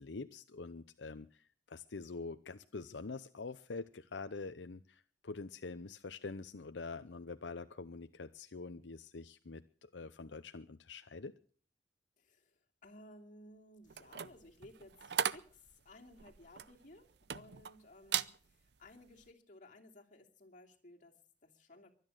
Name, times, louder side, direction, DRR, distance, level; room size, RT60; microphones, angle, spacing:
voice 1, 0.0-11.3, left 3 dB, 85° left, 10 dB, 0.7 m, -45 dB
voice 2, 12.2-21.9, left 1 dB, 45° left, 1 dB, 2.8 m, -58 dB
sound 1, 13.9-17.7 18.0-18.4 18.8-19.1, right 8 dB, 65° right, 0.7 m, -38 dB
23.5 x 9.5 x 6.4 m, 0.43 s
head